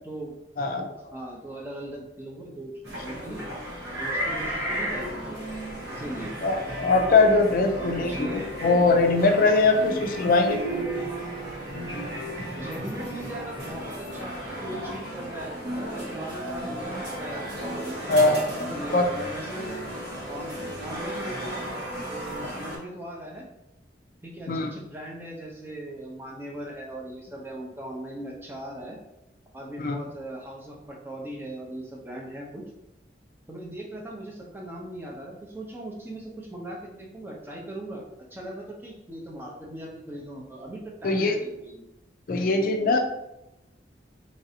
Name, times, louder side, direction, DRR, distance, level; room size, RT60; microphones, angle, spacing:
voice 1, 0.6-0.9 6.4-10.6 18.1-18.5 18.9-19.1 24.5-24.7 29.8-30.0 41.0-41.4 42.3-43.0, left 3 dB, 50° left, 4 dB, 0.4 m, -21 dB
voice 2, 1.1-2.7 3.0-3.5 4.0-5.4 5.9-6.3 7.8-8.5 9.9-10.0 12.6-19.8 20.3-20.6 20.8-21.7 22.1-23.5 24.2-29.0 29.5-32.6 33.5-38.0 38.3-41.8, right 1 dB, 10° right, -2 dB, 0.5 m, -39 dB
sound 1, 2.8-22.8, right 1 dB, 75° right, 1.2 m, -34 dB
3.2 x 2.6 x 2.7 m, 0.90 s
head